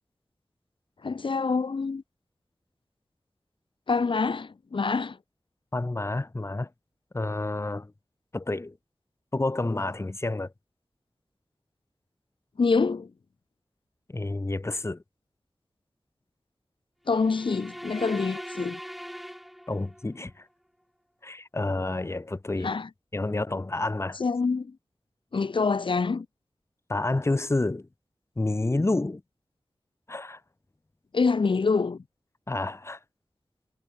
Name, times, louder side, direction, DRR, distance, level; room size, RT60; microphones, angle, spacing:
voice 1, 1.0-2.0 3.9-5.2 12.6-13.1 17.1-18.8 22.6-22.9 24.2-24.7 25.3-26.3 31.1-32.0, left 4 dB, 70° left, 0.9 m, -26 dB
voice 2, 5.7-6.7 7.1-7.9 8.3-8.7 9.3-10.5 14.1-15.0 19.7-20.3 21.2-22.8 23.1-24.2 26.9-27.9 28.4-29.2 30.1-30.4 32.5-33.0, left 2 dB, 30° left, 1.1 m, -29 dB
sound 1, 17.1-20.2, equal, ahead, 1.6 m, -40 dB
wide cardioid pair, 75°, 9 cm